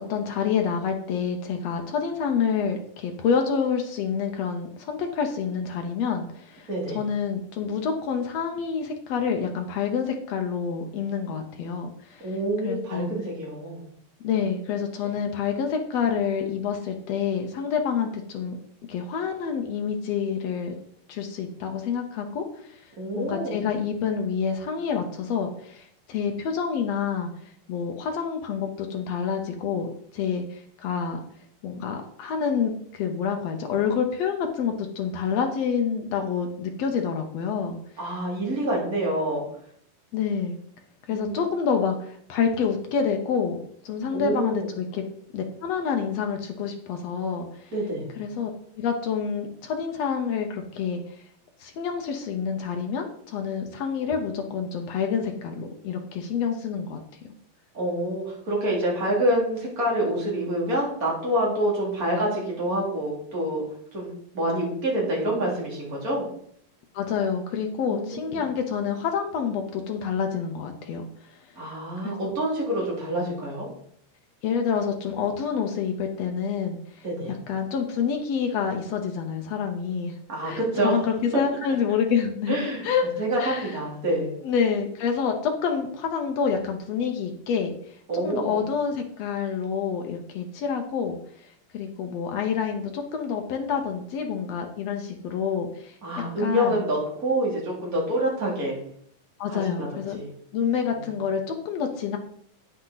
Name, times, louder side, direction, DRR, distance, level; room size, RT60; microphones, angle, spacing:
voice 1, 0.1-6.7 6.9-12.3 12.6-13.1 14.2-18.6 18.9-20.7 21.1-22.8 23.1-27.3 27.7-29.9 30.1-31.2 31.6-37.8 40.1-40.6 41.1-45.0 45.3-47.7 48.2-48.5 48.8-51.0 51.6-57.0 66.9-71.0 72.0-72.3 74.4-80.1 80.4-82.6 82.8-83.1 83.4-83.8 84.4-87.8 88.1-91.5 91.7-95.9 96.4-96.8 99.4-100.2 100.5-102.2, left 6 dB, 80° left, 4 dB, 1.5 m, -28 dB
voice 2, 12.2-13.8 23.0-23.6 38.0-39.4 41.1-41.4 44.1-44.7 47.7-48.1 57.7-63.6 63.9-64.1 64.3-66.2 67.9-68.4 71.6-73.7 77.0-77.3 80.3-80.9 82.5-82.8 83.2-84.4 88.1-88.6 96.0-98.8 99.5-99.9 100.1-100.3 101.0-101.1, right 1 dB, 25° right, -4 dB, 3.0 m, -27 dB
9.1 x 8.0 x 4.0 m, 0.65 s
omnidirectional pair, 4.1 m